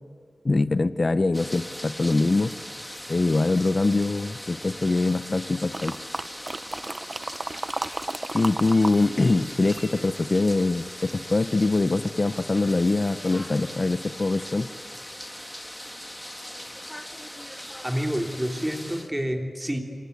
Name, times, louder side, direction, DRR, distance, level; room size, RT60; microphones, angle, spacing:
voice 1, 0.4-2.5 3.1-6.0 8.3-14.7, left 3 dB, 45° left, 13 dB, 0.8 m, -23 dB
sound 1, 1.3-19.1, equal, 5° left, 1.8 m, -40 dB
sound 2, 5.7-9.0 9.2-10.7 11.2-11.3, right 2 dB, 40° right, 0.7 m, -33 dB
voice 2, 17.8-19.8, equal, 10° right, 3 dB, 3.4 m, -28 dB
27.5 x 26.5 x 8.2 m, 2.1 s
wide cardioid pair, 65°, 0 cm